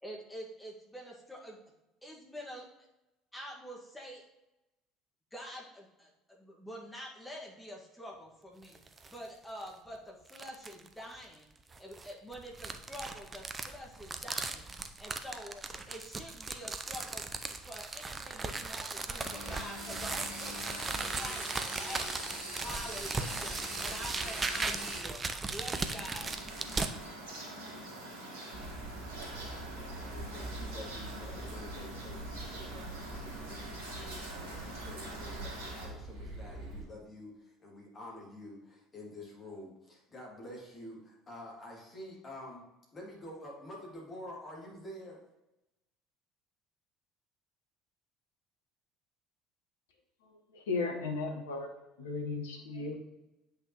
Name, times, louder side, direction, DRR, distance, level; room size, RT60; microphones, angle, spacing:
voice 1, 0.0-1.6 2.0-2.7 3.3-4.2 5.3-8.8 9.1-11.5 11.8-14.7 15.0-25.2 25.5-26.4, equal, 10° left, -2 dB, 1.9 m, -46 dB
sound 1, 8.6-9.2 9.6-9.7 10.3-10.9 11.7-26.9, right 3 dB, 25° right, 0.6 m, -38 dB
sound 2, 19.1-25.0 25.8-35.9, right 1 dB, 70° right, 1.9 m, -43 dB
sound 3, 28.5-36.8, right 2 dB, 50° right, 1.8 m, -44 dB
voice 2, 30.1-42.6 42.9-45.2, left 1 dB, 30° left, -3 dB, 2.7 m, -48 dB
voice 3, 50.2-51.7 52.0-53.0, left 4 dB, 70° left, 3 dB, 1.2 m, -36 dB
8.3 x 5.5 x 3.1 m, 0.96 s
figure-of-eight pair, 60°, 0 cm